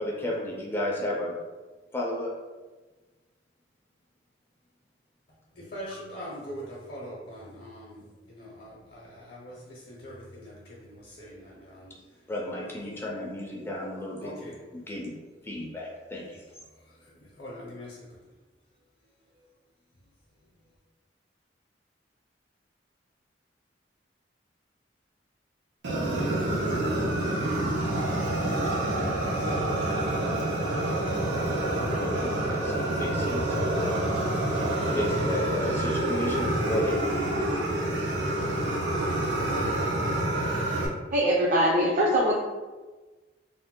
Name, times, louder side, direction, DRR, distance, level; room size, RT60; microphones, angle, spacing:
voice 1, 0.0-1.4 1.9-2.3 12.3-14.3 14.7-16.4 31.8-34.0 34.9-37.0, left 1 dB, 15° left, -3 dB, 0.4 m, -33 dB
voice 2, 5.6-12.0 14.2-14.5 17.4-18.0, equal, 55° left, -5 dB, 0.6 m, -42 dB
Fire, 25.8-40.9, right 1 dB, 90° right, 0.6 m, -27 dB
voice 3, 41.1-42.4, equal, 50° right, -4 dB, 0.5 m, -22 dB
2.6 x 2.1 x 3.6 m, 1.3 s
head